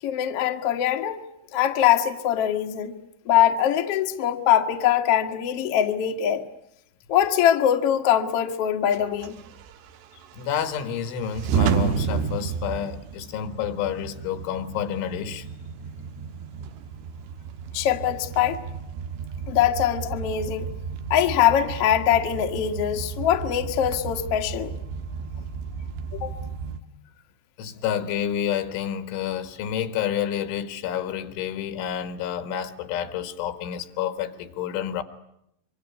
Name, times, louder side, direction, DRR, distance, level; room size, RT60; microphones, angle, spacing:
voice 1, 0.0-1.2 1.5-2.9 3.3-6.5 7.1-9.4 17.7-18.6 19.5-20.7 21.1-24.7 26.2-26.4, left 10 dB, 65° left, 1.4 m, -22 dB
sound 1, 8.9-26.8, right 6 dB, 75° right, 3.3 m, -32 dB
voice 2, 10.3-15.5 27.6-35.0, left 9 dB, 90° left, 4.1 m, -29 dB
25.5 x 24.5 x 9.6 m
omnidirectional pair, 5.3 m